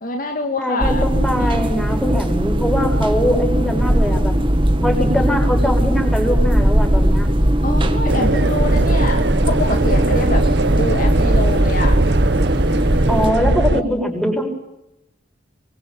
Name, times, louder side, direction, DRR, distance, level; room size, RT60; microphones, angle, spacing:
voice 1, 0.0-1.0 1.4-1.7 7.6-12.0 13.7-14.0, left 2 dB, 50° left, 4 dB, 2.1 m, -26 dB
voice 2, 0.6-4.3 4.8-7.3 13.1-14.5, equal, 5° left, 2 dB, 7.1 m, -22 dB
sound 1, 0.8-13.3, equal, 30° right, 1.9 m, -19 dB
sound 2, 8.1-13.8, right 2 dB, 65° right, 1.1 m, -19 dB
26.0 x 24.0 x 8.9 m, 0.87 s
head